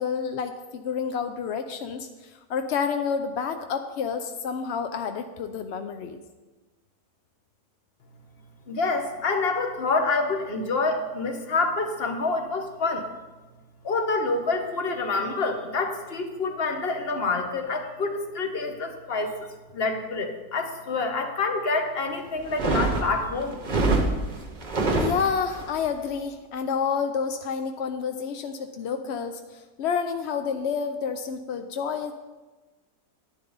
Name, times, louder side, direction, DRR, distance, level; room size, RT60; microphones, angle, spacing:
voice 1, 0.0-6.2 25.0-32.1, left 6 dB, 70° left, 7 dB, 0.6 m, -29 dB
voice 2, 8.7-13.1 13.8-19.5 19.7-23.6, left 3 dB, 40° left, 5 dB, 1.1 m, -27 dB
sound 1, 22.4-25.7, right 2 dB, 35° right, 0.9 m, -25 dB
11.0 x 10.5 x 4.0 m, 1.2 s
omnidirectional pair, 1.8 m